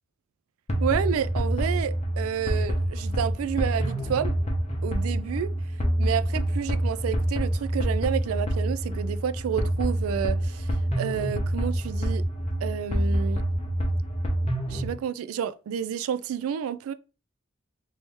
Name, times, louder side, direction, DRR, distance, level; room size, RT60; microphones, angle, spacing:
sound 1, 0.7-14.9, right 1 dB, 30° left, 0.9 m, -27 dB
voice 1, 0.8-4.3 4.8-5.5 6.0-10.7 11.0-12.2 12.6-13.4 14.7-16.9, right 8 dB, 85° right, 0.3 m, -30 dB
3.1 x 2.7 x 3.3 m
head